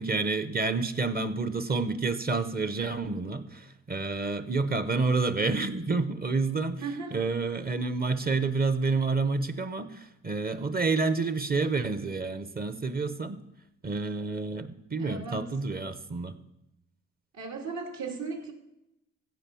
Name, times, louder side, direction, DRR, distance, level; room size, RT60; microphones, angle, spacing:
voice 1, 0.0-13.4 13.8-16.4, right 3 dB, 30° right, 12 dB, 1.0 m, -29 dB
voice 2, 6.8-7.2 15.0-15.5 17.3-18.5, right 4 dB, 65° right, 2 dB, 2.6 m, -36 dB
15.0 x 5.5 x 7.0 m, 0.85 s
cardioid pair, 90°, 30 cm